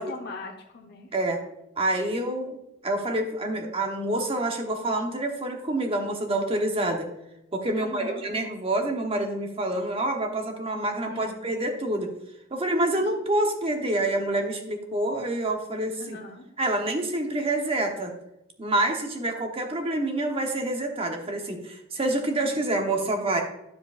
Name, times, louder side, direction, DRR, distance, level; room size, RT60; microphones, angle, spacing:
voice 1, 0.0-1.1 7.7-8.2 11.1-11.4 12.9-13.1 16.0-16.5 22.4-22.7, left 3 dB, 45° left, -1 dB, 1.0 m, -40 dB
voice 2, 1.8-2.6 2.8-7.1 7.5-12.1 12.5-16.2 16.6-18.1 18.6-23.4, right 1 dB, 25° right, 3 dB, 1.0 m, -27 dB
9.8 x 7.5 x 2.5 m, 0.85 s
head